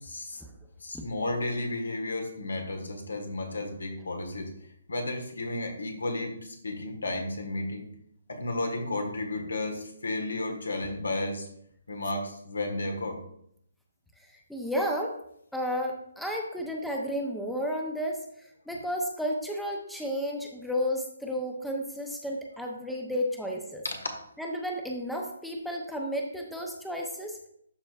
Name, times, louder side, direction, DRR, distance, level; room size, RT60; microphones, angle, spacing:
voice 1, 0.0-0.4 0.8-4.5 4.9-7.8 8.3-11.5 11.9-13.2 24.0-24.1, left 2 dB, 70° left, 4 dB, 1.4 m, -33 dB
voice 2, 14.3-15.1 15.5-23.8 24.4-27.5, equal, ahead, 0 dB, 0.7 m, -32 dB
12.0 x 4.3 x 2.4 m, 0.71 s
figure-of-eight pair, 140°, 0 cm